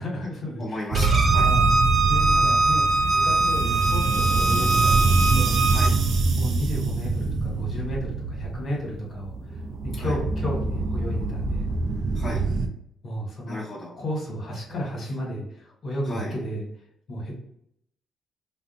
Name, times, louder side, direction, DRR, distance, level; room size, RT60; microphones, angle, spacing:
voice 1, 0.0-0.9 1.4-1.7 2.1-5.5 6.3-9.3 9.8-11.7 13.0-13.6 14.0-16.6 17.1-17.3, equal, 50° left, -2 dB, 1.3 m, -32 dB
voice 2, 0.6-1.5 5.7-6.0 10.0-10.2 12.1-12.5 13.5-13.9 16.0-16.3, left 1 dB, 25° left, -7 dB, 0.9 m, -35 dB
Bowed string instrument, 0.9-5.9, right 3 dB, 40° right, 1.0 m, -22 dB
sound 1, 0.9-12.7, right 3 dB, 60° right, 0.5 m, -24 dB
2.4 x 2.2 x 3.9 m, 0.73 s
cardioid pair, 90°, 0 cm